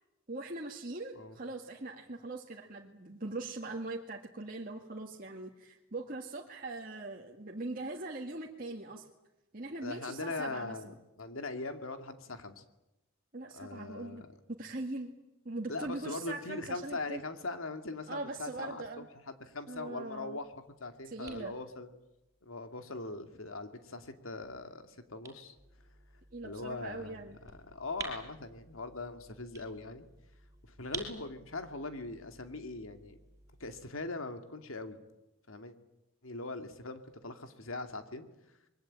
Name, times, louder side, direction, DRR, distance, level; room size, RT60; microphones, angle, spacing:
voice 1, 0.3-9.1 9.5-10.8 13.3-14.2 14.6-15.1 15.5-17.2 18.1-19.1 19.7-20.4 21.0-21.5 26.3-27.4, right 2 dB, 40° right, -1 dB, 1.9 m, -41 dB
voice 2, 9.8-12.6 13.5-14.3 15.7-20.5 20.8-21.9 22.4-25.6 26.4-30.1 30.6-33.2 33.6-35.0 35.5-35.7 36.2-38.3, left 3 dB, 80° left, 8 dB, 2.5 m, -41 dB
sound 1, 20.4-33.9, right 3 dB, 15° right, 5.4 m, -51 dB
26.0 x 22.5 x 8.9 m, 0.94 s
head